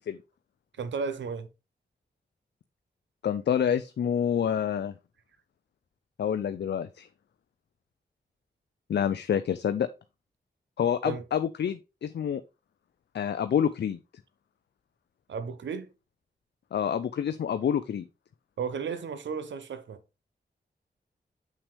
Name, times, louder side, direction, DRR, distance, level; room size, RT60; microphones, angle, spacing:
voice 1, 0.8-1.5 11.0-11.2 15.3-15.9 18.6-20.0, right 5 dB, 85° right, 0.8 m, -34 dB
voice 2, 3.2-4.9 6.2-7.1 8.9-9.9 10.8-12.4 13.1-14.0 16.7-18.0, left 8 dB, 70° left, 0.4 m, -27 dB
6.8 x 5.8 x 3.2 m
cardioid pair, 45°, 19 cm